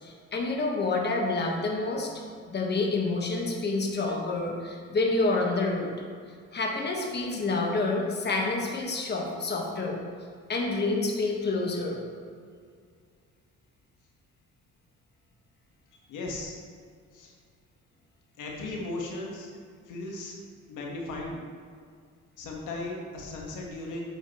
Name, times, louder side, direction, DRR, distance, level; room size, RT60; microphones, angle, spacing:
voice 1, 0.0-2.1 2.5-5.9 6.5-10.0 10.5-12.0, left 3 dB, 35° left, 0 dB, 1.3 m, -28 dB
voice 2, 16.1-16.5 17.1-17.3 18.4-19.5 19.9-20.4 20.7-21.4 22.4-24.1, left 2 dB, 85° left, -1 dB, 1.4 m, -36 dB
8.4 x 7.0 x 3.0 m, 2.1 s
cardioid pair, 90°, 30 cm